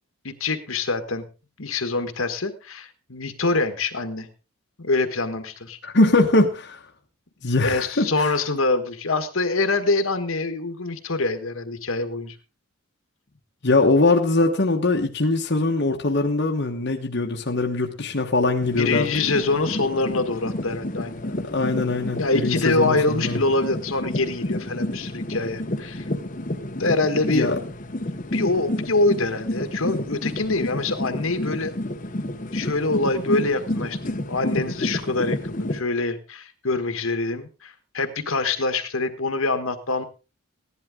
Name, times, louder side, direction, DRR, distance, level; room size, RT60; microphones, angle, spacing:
voice 1, 0.2-1.3 1.6-4.3 4.8-5.8 7.5-12.3 18.8-21.2 22.2-26.1 26.8-27.6 28.3-31.7 32.5-40.0, left 3 dB, 70° left, 1.5 m, -25 dB
voice 2, 5.8-6.8 7.4-8.3 13.6-19.1 21.2-23.4 27.3-27.6, left 2 dB, 50° left, 1.3 m, -22 dB
sound 1, 18.6-35.8, left 1 dB, 35° left, 1.0 m, -30 dB
16.0 x 11.0 x 3.7 m
head